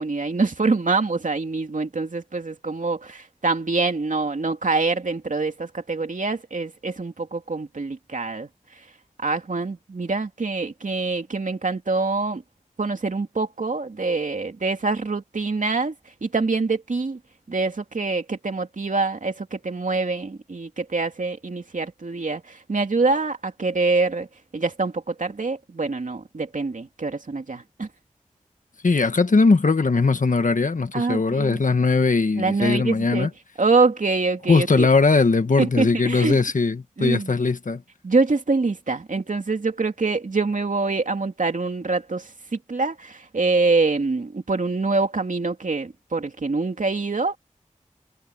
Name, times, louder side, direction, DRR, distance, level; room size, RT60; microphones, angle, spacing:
voice 1, 0.0-8.5 9.2-12.4 12.8-15.9 16.2-17.2 17.5-24.3 24.5-27.9 30.9-31.6 32.4-33.3 33.6-34.9 35.6-36.4 37.0-37.3 38.0-47.4, right 3 dB, 75° right, 2.8 m, -25 dB
voice 2, 28.8-33.3 34.5-37.8, left 4 dB, 80° left, 1.6 m, -20 dB
wide cardioid pair, 60°, 13 cm